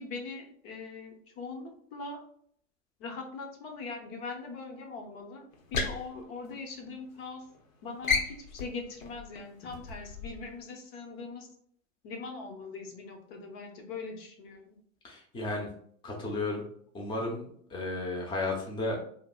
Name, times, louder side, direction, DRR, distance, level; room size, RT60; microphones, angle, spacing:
voice 1, 0.0-2.2 3.0-5.5 5.7-7.5 7.8-11.5 12.0-14.8, left 4 dB, 50° left, 3 dB, 0.9 m, -41 dB
sound 1, 5.5-7.2 7.5-7.7 8.0-10.6, left 4 dB, 85° left, 0.7 m, -34 dB
voice 2, 15.0-15.7 16.0-16.7 16.9-19.0, left 2 dB, 10° left, -1 dB, 0.7 m, -33 dB
5.0 x 2.0 x 2.2 m, 0.62 s
hypercardioid pair, 100°, 40 cm